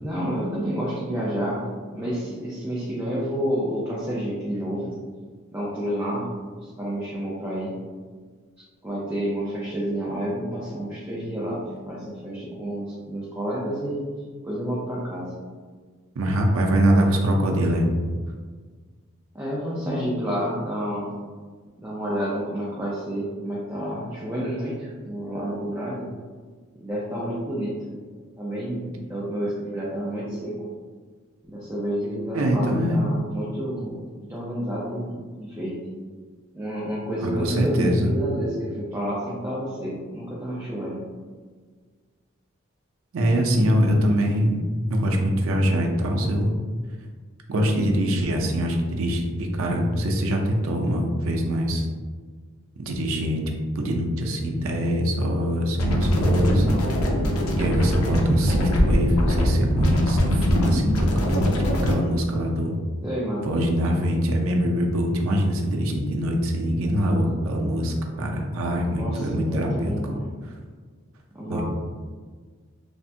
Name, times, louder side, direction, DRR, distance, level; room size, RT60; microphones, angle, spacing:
voice 1, 0.0-5.0 5.5-7.9 8.8-14.1 14.4-15.3 19.3-21.1 21.8-26.1 26.8-27.9 28.4-30.7 31.4-35.9 36.5-41.1 63.0-63.5 68.9-70.3 71.3-71.6, equal, 10° right, -8 dB, 0.4 m, -29 dB
voice 2, 16.2-17.9 32.3-33.1 37.2-38.1 43.1-44.6 44.9-46.5 47.5-51.9 52.8-53.4 53.7-56.8 57.5-61.5 61.8-62.7 63.4-70.1 71.5-71.6, equal, 75° right, 1 dB, 0.5 m, -23 dB
sound 1, 55.8-61.9, equal, 85° left, 0.5 m, -22 dB
3.3 x 2.1 x 2.6 m, 1.5 s
head